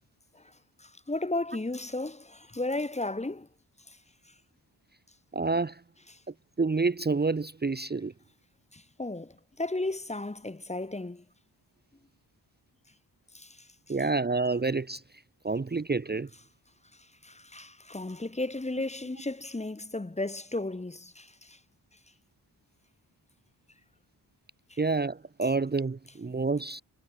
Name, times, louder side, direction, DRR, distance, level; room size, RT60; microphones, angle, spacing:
voice 1, 0.8-3.5 3.9-4.0 8.7-11.2 13.3-13.7 17.2-21.6 24.7-24.8, left 2 dB, 15° left, 1.5 m, -34 dB
voice 2, 5.3-5.8 6.6-8.1 13.9-15.0 15.4-16.3 24.8-26.8, right 3 dB, 25° right, 1.0 m, -28 dB
wide cardioid pair, 150°, 42 cm